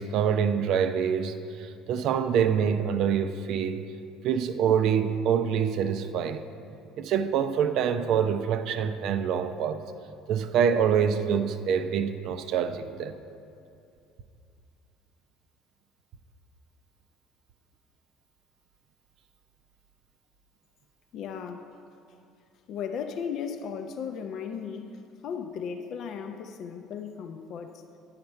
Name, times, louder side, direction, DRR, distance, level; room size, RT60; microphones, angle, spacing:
voice 1, 0.0-3.8 4.2-6.4 7.0-9.8 10.3-13.1, right 7 dB, 60° right, 10 dB, 0.4 m, -26 dB
voice 2, 21.1-21.6 22.7-27.8, left 7 dB, 55° left, 6 dB, 0.4 m, -36 dB
9.3 x 5.7 x 4.4 m, 2.5 s
hypercardioid pair, 60°, 0 cm